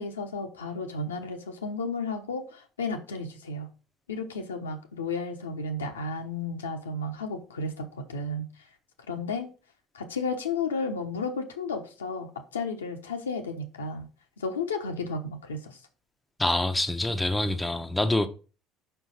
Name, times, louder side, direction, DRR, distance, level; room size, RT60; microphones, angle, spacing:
voice 1, 0.0-3.7 4.1-8.5 9.1-9.5 9.9-14.1 14.4-15.8, left 3 dB, 85° left, 1.0 m, -33 dB
voice 2, 16.4-18.3, left 1 dB, 10° left, 0.9 m, -26 dB
5.5 x 4.6 x 5.5 m
figure-of-eight pair, 60°, 0 cm